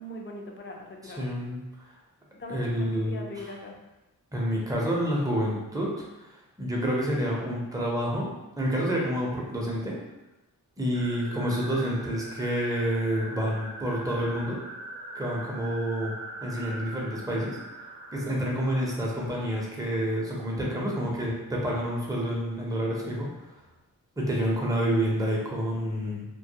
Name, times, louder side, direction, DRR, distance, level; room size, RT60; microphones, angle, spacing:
voice 1, 0.0-1.2 2.3-3.8, left 1 dB, 35° left, 0 dB, 0.5 m, -40 dB
voice 2, 1.0-1.6 2.5-3.5 4.3-5.9 6.2-10.0 10.8-14.6 15.1-16.1 16.4-17.6 18.1-23.5 24.2-26.3, equal, 10° right, -3 dB, 0.6 m, -28 dB
sound 1, 10.9-20.6, right 1 dB, 65° right, 0.6 m, -42 dB
2.2 x 2.1 x 2.7 m, 0.99 s
cardioid pair, 75°, 36 cm